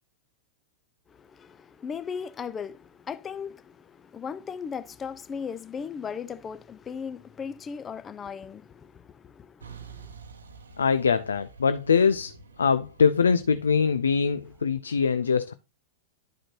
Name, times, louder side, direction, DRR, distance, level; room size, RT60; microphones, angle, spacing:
voice 1, 1.1-10.1, left 6 dB, 20° left, 0.5 m, -37 dB
Truck, 9.6-14.6, right 4 dB, 75° right, 0.9 m, -48 dB
voice 2, 10.8-15.5, left 6 dB, 80° left, 0.4 m, -23 dB
11.0 x 5.0 x 2.8 m
figure-of-eight pair, 95°, 0 cm